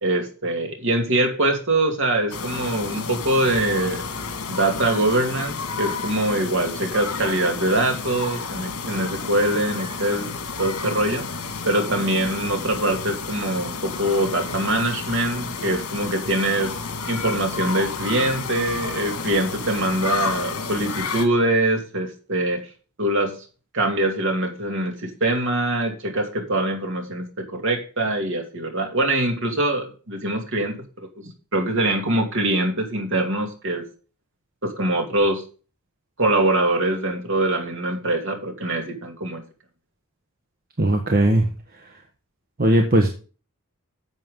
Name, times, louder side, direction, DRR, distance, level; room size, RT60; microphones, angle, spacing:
voice 1, 0.0-4.0 4.5-11.2 11.7-16.8 17.1-22.6 23.0-23.4 23.7-30.8 31.5-33.8 34.6-35.4 36.2-39.4, right 1 dB, 60° right, 3 dB, 2.6 m, -23 dB
sound 1, 2.3-21.3, left 4 dB, 80° left, 2.1 m, -31 dB
voice 2, 40.8-41.4 42.6-43.1, right 1 dB, 40° right, 3 dB, 1.4 m, -18 dB
11.0 x 7.6 x 3.8 m, 0.36 s
head